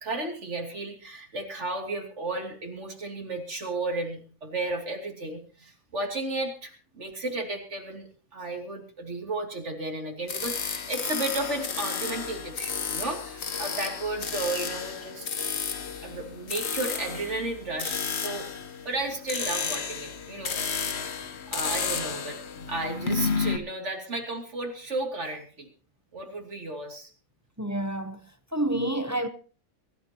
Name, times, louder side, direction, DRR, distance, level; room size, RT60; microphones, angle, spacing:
voice 1, 0.0-15.3 16.0-18.5 18.8-20.6 21.1-21.2 21.5-22.4 22.7-25.7 26.1-27.1, right 2 dB, 45° right, 3.1 m, -33 dB
sound 1, 10.3-23.6, left 5 dB, 50° left, 1.2 m, -32 dB
voice 2, 27.6-28.3 28.5-29.3, right 1 dB, 20° right, 0.5 m, -28 dB
23.5 x 12.5 x 3.0 m
omnidirectional pair, 1.6 m